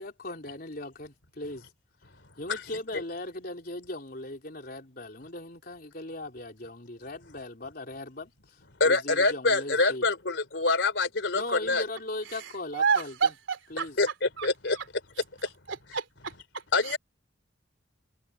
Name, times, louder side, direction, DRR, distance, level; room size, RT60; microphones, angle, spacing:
voice 1, 0.0-1.7 2.4-10.1 11.3-13.3 13.7-14.0, left 2 dB, 50° left, 3.9 m, -39 dB
voice 2, 8.8-11.8 14.0-14.8 15.4-15.5 16.7-17.0, left 3 dB, 65° left, 3.2 m, -25 dB
voice 3, 12.7-13.9 14.4-14.5 15.7-16.3 16.9-17.0, right 6 dB, 80° right, 3.0 m, -28 dB
head